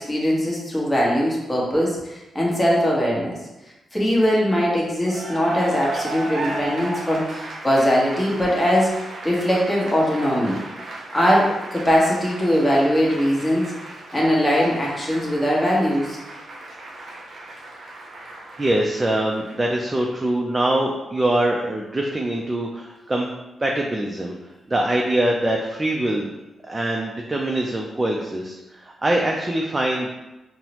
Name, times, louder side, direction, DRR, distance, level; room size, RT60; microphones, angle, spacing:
voice 1, 0.0-3.4 3.9-8.9 9.2-10.6 11.1-13.7 14.1-16.2, equal, 15° left, -4 dB, 1.0 m, -21 dB
Cheering / Applause, 5.0-19.9, right 1 dB, 65° right, 0.6 m, -36 dB
voice 2, 18.6-23.3 23.6-24.4 24.7-26.3 26.6-30.1, right 1 dB, 25° right, 0 dB, 0.4 m, -23 dB
3.9 x 2.0 x 2.9 m, 1.0 s
cardioid pair, 70°, 0 cm